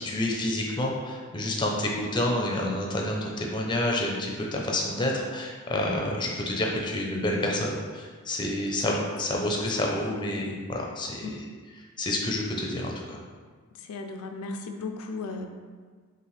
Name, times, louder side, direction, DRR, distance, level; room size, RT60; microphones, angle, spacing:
voice 1, 0.0-11.5 12.0-13.2, left 1 dB, 20° left, 0 dB, 0.5 m, -29 dB
voice 2, 13.8-15.5, left 3 dB, 85° left, 5 dB, 0.4 m, -36 dB
5.7 x 2.5 x 3.2 m, 1.5 s
head